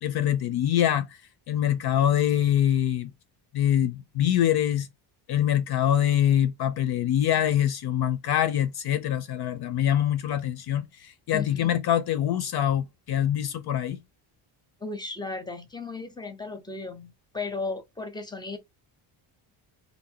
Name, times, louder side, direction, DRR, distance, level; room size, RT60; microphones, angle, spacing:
voice 1, 0.0-1.2 1.5-3.1 3.5-4.9 5.3-14.0, left 11 dB, 50° left, 0.5 m, -24 dB
voice 2, 11.3-11.8 14.8-18.6, left 3 dB, 10° left, 0.6 m, -35 dB
3.8 x 2.8 x 2.8 m
cardioid pair, 150°, 49 cm